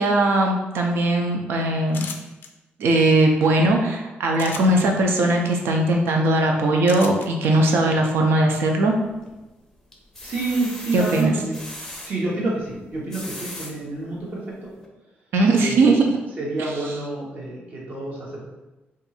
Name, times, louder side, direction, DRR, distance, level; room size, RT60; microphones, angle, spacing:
voice 1, 0.0-2.0 2.8-8.9 10.9-11.3 15.3-16.2, right 2 dB, 90° right, 2 dB, 0.5 m, -19 dB
sound 1, 1.9-2.5 4.3-4.8 6.9-7.3, left 6 dB, 65° left, 0.3 m, -35 dB
sound 2, 8.8-9.4 9.9-12.1 12.9-13.7 14.3-14.4 14.8-14.9, left 1 dB, 10° left, 0.6 m, -38 dB
voice 2, 10.2-11.6 12.0-14.7 15.5-15.9 16.4-18.4, right 2 dB, 45° right, -5 dB, 1.1 m, -28 dB
2.6 x 2.5 x 4.1 m, 1.1 s
cardioid pair, 135°, 4 cm